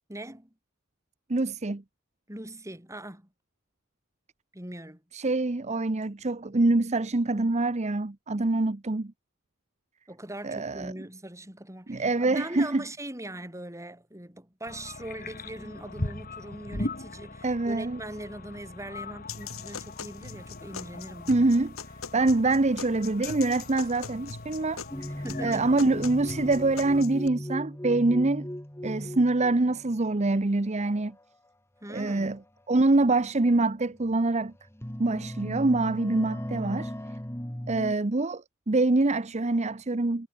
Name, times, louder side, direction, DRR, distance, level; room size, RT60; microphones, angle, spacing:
voice 1, 0.1-0.5 2.3-3.3 4.5-5.0 10.1-21.5 25.2-25.7 31.8-32.3, right 1 dB, 15° right, 7.0 m, -41 dB
voice 2, 1.3-1.8 5.1-9.1 10.4-10.9 11.9-12.8 17.4-18.0 21.3-21.7 22.1-24.8 25.4-28.5 28.8-31.1 31.9-32.4 32.7-34.5 35.0-36.9 37.7-40.3, right 2 dB, 30° right, 0.8 m, -25 dB
sound 1, 14.6-27.0, left 2 dB, 45° left, 3.0 m, -41 dB
sound 2, 19.3-27.3, left 6 dB, 75° left, 1.8 m, -41 dB
sound 3, 24.9-30.1 30.9-31.2 32.3-32.4 33.1-33.2 34.0-34.4 34.6-37.9, equal, 10° left, 1.9 m, -37 dB
head